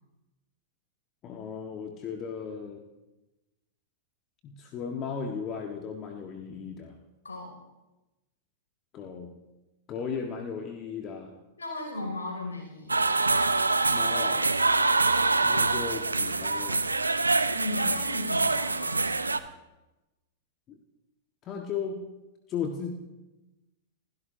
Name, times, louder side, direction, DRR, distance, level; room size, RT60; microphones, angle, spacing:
voice 1, 1.2-2.8 4.4-7.0 8.9-9.3 9.9-11.4 13.9-14.5 15.4-16.9 20.7-20.8 21.4-22.1 22.5-22.9, left 6 dB, 35° left, 3 dB, 1.6 m, -36 dB
voice 2, 7.2-7.6 11.6-13.1 17.5-19.1, left 2 dB, 80° left, 1 dB, 6.1 m, -36 dB
sound 1, 12.9-19.4, right 3 dB, 85° right, 0.6 m, -25 dB
28.5 x 16.0 x 2.8 m, 1.0 s
figure-of-eight pair, 95°, 0 cm